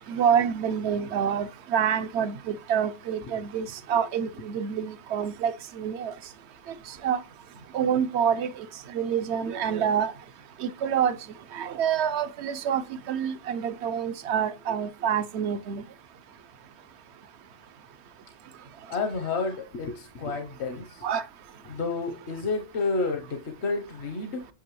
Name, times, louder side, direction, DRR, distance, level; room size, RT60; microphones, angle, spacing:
voice 1, 0.1-6.1 7.0-7.2 7.7-8.5 8.9-10.1 10.6-11.2 11.5-15.8 21.0-21.2, right 8 dB, 75° right, 0.9 m, -27 dB
voice 2, 18.9-21.1 21.7-24.5, left 3 dB, 70° left, 1.1 m, -30 dB
8.8 x 5.9 x 3.0 m
omnidirectional pair, 1.2 m